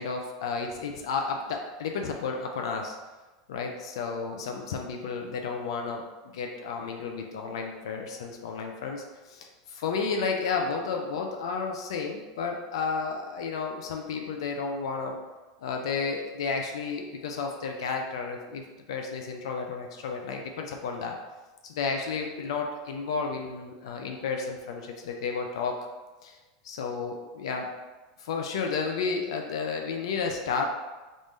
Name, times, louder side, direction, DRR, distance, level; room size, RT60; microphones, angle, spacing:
voice 1, 0.0-3.0 3.5-15.2 15.6-21.2 21.6-25.8 26.2-26.4 26.6-27.7 28.2-30.6, left 5 dB, 85° left, 2 dB, 0.4 m, -32 dB
3.6 x 2.5 x 3.1 m, 1.2 s
supercardioid pair, 130°, 3 cm